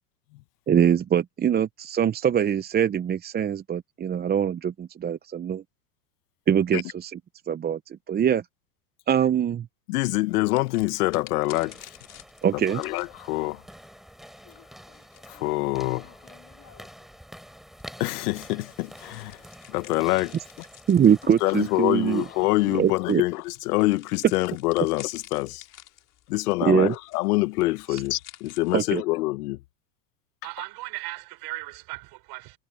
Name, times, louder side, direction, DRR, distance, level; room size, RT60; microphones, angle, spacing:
voice 1, 0.7-5.6 6.5-7.2 7.5-8.4 9.1-9.7 12.4-12.8 20.9-22.2 22.8-23.2 26.6-26.9 27.9-28.0 28.7-29.0, right 8 dB, 20° right, 0.8 m, -23 dB
voice 2, 9.9-12.0 12.5-13.6 15.3-16.1 18.0-19.4 19.7-20.3 21.4-25.7 26.3-29.6, left 20 dB, 70° left, 1.3 m, -26 dB
sound 1, 10.5-17.1 17.7-28.8, left 13 dB, 40° left, 6.1 m, -51 dB
sound 2, 11.3-23.3, equal, ahead, 7.1 m, -48 dB
voice 3, 30.4-32.6, right 22 dB, 50° right, 4.4 m, -37 dB
hypercardioid pair, 105°, 47 cm